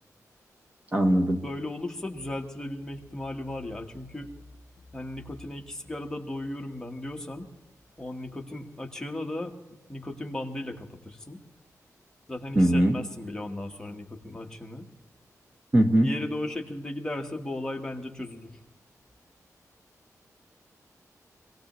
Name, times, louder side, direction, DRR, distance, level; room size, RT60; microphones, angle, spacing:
voice 1, 0.9-1.4 12.5-12.9 15.7-16.1, right 1 dB, 25° right, 4 dB, 1.1 m, -20 dB
voice 2, 1.4-4.3 4.9-7.5 8.0-9.5 9.9-11.4 12.3-14.9 16.0-18.6, left 1 dB, 10° left, 2 dB, 1.2 m, -36 dB
25.5 x 17.0 x 3.1 m, 1.1 s
wide cardioid pair, 170°, 6 cm